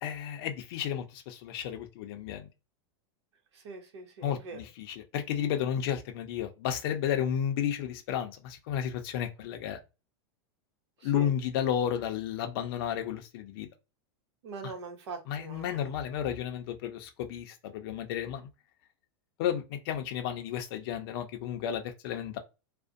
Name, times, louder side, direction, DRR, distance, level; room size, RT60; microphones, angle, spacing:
voice 1, 0.0-2.5 4.2-9.8 11.0-13.7 14.6-14.7 15.3-18.5 19.4-22.4, left 9 dB, 60° left, 0.5 m, -32 dB
voice 2, 3.5-4.6 11.0-11.3 14.4-15.9, right 4 dB, 80° right, 0.9 m, -42 dB
2.5 x 2.1 x 2.5 m
supercardioid pair, 135°, 14 cm